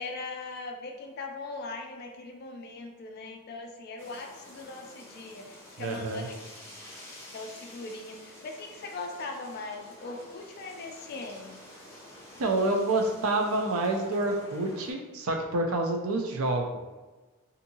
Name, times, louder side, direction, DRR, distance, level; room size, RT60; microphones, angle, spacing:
voice 1, 0.0-6.3 7.3-11.6, left 3 dB, 45° left, 3 dB, 0.3 m, -40 dB
sound 1, 4.0-14.9, left 1 dB, 10° left, 0.6 m, -49 dB
voice 2, 5.8-6.3 12.4-16.8, right 2 dB, 80° right, 2 dB, 0.4 m, -28 dB
2.7 x 2.6 x 2.7 m, 1.2 s
head